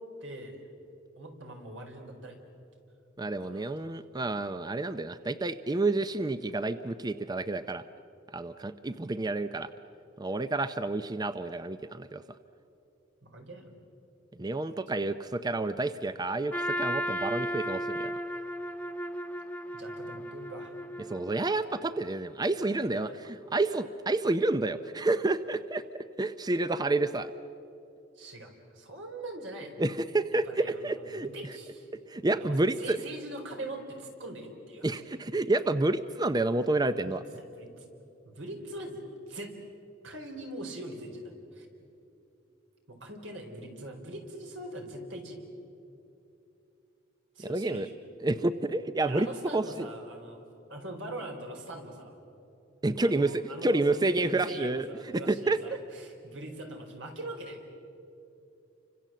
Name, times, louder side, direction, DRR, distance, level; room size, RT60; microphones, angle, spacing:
voice 1, 0.2-0.6 1.2-2.4 3.4-3.7 13.2-13.8 14.9-15.0 19.7-20.8 22.5-23.1 28.2-29.7 30.3-31.9 32.3-35.0 37.0-37.9 38.2-39.6 40.0-41.7 42.9-45.4 47.3-47.9 49.0-50.4 50.7-52.2 53.0-57.6, right 1 dB, 80° right, 3 dB, 4.5 m, -42 dB
voice 2, 3.2-7.8 8.3-9.7 10.2-12.2 14.4-18.1 21.0-27.3 29.8-31.3 32.1-33.0 34.8-37.2 47.4-47.9 48.2-49.3 49.5-49.9 52.8-55.8, right 2 dB, 20° right, 11 dB, 0.6 m, -29 dB
Trumpet, 16.5-21.6, equal, 10° left, 1.0 m, -35 dB
30.0 x 25.5 x 7.6 m, 2.9 s
head